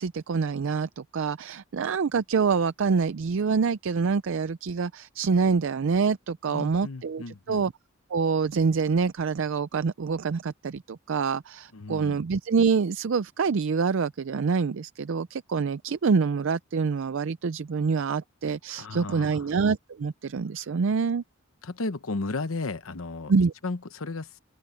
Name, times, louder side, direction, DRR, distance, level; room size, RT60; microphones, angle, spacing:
voice 1, 0.0-7.7 8.1-21.2 23.3-23.5, right 5 dB, 65° right, 0.5 m, -26 dB
voice 2, 6.5-7.7 11.7-12.2 18.7-19.5 21.6-23.3 23.6-24.4, left 3 dB, 75° left, 1.0 m, -34 dB
open air
head